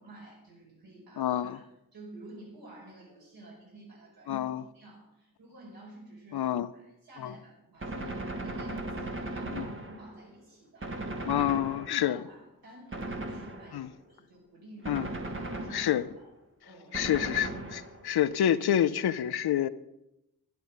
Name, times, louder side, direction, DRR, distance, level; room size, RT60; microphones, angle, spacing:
voice 1, 0.0-1.7 1.9-11.5 11.9-15.9 16.2-16.3 16.6-17.3, right 2 dB, 65° right, -3 dB, 4.8 m, -51 dB
voice 2, 1.2-1.6 4.3-4.6 6.3-6.7 7.2-7.3 9.5-9.7 11.3-12.2 13.7-13.9 14.9-15.1 15.7-16.0 16.9-19.7, left 10 dB, 80° left, 14 dB, 0.6 m, -28 dB
Gunshot gunfire, 7.8-10.3 10.8-12.2 12.9-13.9 14.8-16.2 16.9-18.2, right 2 dB, 30° right, 1.5 m, -37 dB
11.0 x 10.5 x 5.3 m, 0.87 s
wide cardioid pair, 140°, 38 cm